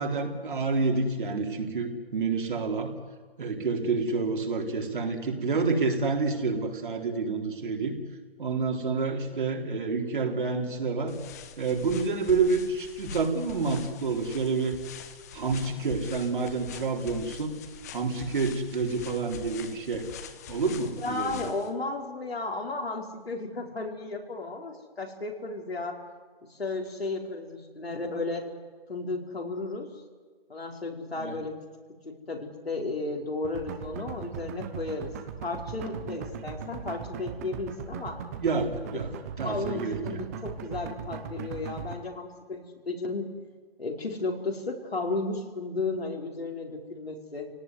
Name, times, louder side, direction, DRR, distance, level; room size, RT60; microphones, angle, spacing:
voice 1, 0.0-2.9 3.4-8.0 8.4-11.2 11.6-14.8 15.3-17.5 17.9-20.1 20.5-21.5 31.1-31.4 38.4-39.1 39.4-40.2, right 4 dB, 55° right, 2 dB, 4.1 m, -28 dB
sound 1, 11.1-21.7, left 6 dB, 15° left, 0.9 m, -44 dB
voice 2, 21.0-26.0 26.5-28.4 28.9-29.9 30.5-31.6 32.0-35.1 35.4-38.2 39.4-43.3 43.8-47.5, left 3 dB, 85° left, 1 dB, 4.9 m, -34 dB
sound 2, 33.4-41.9, right 7 dB, 15° right, 1.0 m, -38 dB
28.0 x 18.0 x 9.7 m, 1.5 s
figure-of-eight pair, 160°, 30 cm